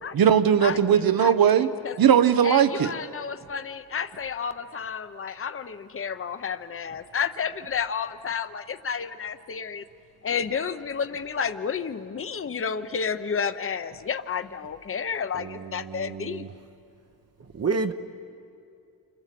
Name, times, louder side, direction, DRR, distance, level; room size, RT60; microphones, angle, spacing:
voice 1, 0.1-2.9, right 8 dB, 75° right, 12 dB, 1.0 m, -19 dB
voice 2, 2.4-9.8 10.2-16.4, left 6 dB, 35° left, 10 dB, 0.8 m, -31 dB
voice 3, 15.3-16.5 17.4-17.9, right 4 dB, 45° right, 6 dB, 0.9 m, -30 dB
29.0 x 25.5 x 7.6 m, 2.5 s
wide cardioid pair, 160°, 35 cm